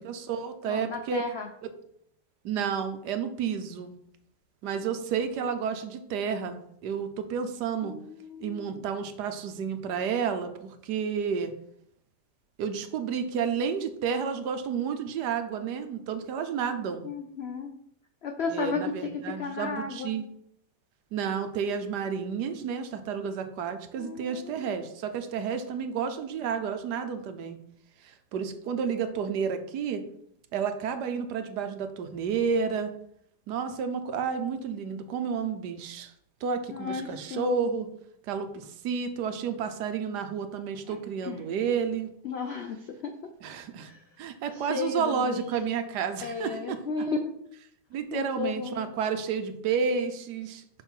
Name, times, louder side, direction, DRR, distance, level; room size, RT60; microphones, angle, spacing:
voice 1, 0.0-1.2 1.6-1.7 2.4-3.9 4.6-7.9 8.4-11.5 12.6-17.0 18.5-20.2 21.1-27.6 28.0-30.0 30.5-32.9 33.5-36.1 36.4-37.9 38.3-42.1 43.4-43.9 44.2-46.8 47.5-50.6, right 6 dB, 75° right, 8 dB, 1.3 m, -31 dB
voice 2, 0.7-1.5 7.8-8.8 17.0-17.7 18.2-20.1 24.0-24.8 36.7-37.5 40.9-41.0 41.2-41.4 42.2-43.3 43.8-44.0 44.5-45.5 46.2-47.4 48.1-48.8, left 5 dB, 70° left, 5 dB, 0.6 m, -34 dB
5.8 x 5.4 x 4.5 m, 0.71 s
omnidirectional pair, 1.8 m